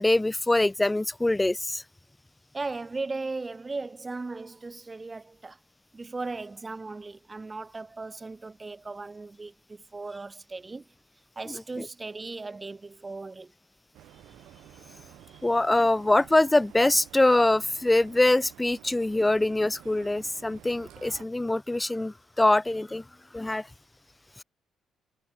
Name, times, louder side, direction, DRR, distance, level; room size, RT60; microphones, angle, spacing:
voice 1, 0.0-1.8 11.5-11.9 15.4-23.0 23.3-23.7, left 2 dB, 15° left, 0.4 m, -24 dB
voice 2, 2.5-5.6 5.9-10.9 11.4-13.5, right 3 dB, 25° right, 1.9 m, -37 dB
sound 1, 13.9-21.3, right 13 dB, 85° right, 7.8 m, -51 dB
cardioid pair, 90°, 0 cm